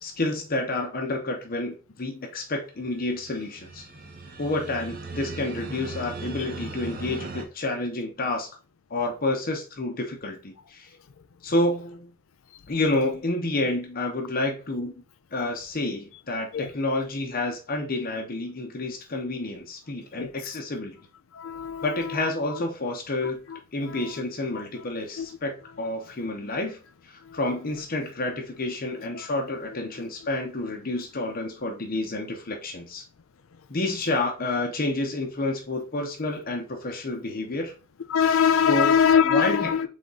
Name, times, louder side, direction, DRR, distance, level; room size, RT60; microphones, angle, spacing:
voice 1, 0.0-3.9 4.4-8.5 8.9-10.9 11.4-12.1 12.7-14.9 15.3-21.0 21.8-23.4 23.7-26.8 27.0-33.0 33.7-37.7 38.7-38.9 39.2-39.9, left 2 dB, 45° left, 0.9 m, -29 dB
sound 1, 2.9-7.4, right 3 dB, 45° right, 0.8 m, -38 dB
voice 2, 20.1-20.6 21.3-22.6 23.2-24.2 24.5-24.6 25.2-25.3 27.2-27.4 29.1-29.3 38.1-39.9, left 7 dB, 85° left, 0.5 m, -24 dB
4.0 x 3.6 x 3.7 m
head